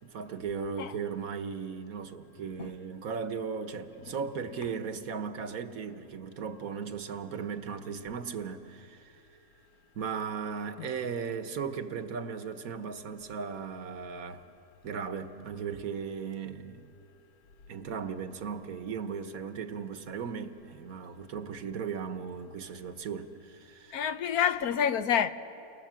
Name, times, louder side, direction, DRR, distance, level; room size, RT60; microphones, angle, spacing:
voice 1, 0.0-9.1 9.9-14.4 14.8-16.9 17.7-24.0, right 6 dB, 65° right, 1.5 m, -37 dB
voice 2, 23.9-25.3, left 8 dB, 75° left, 1.3 m, -28 dB
30.0 x 24.5 x 7.5 m
omnidirectional pair, 1.6 m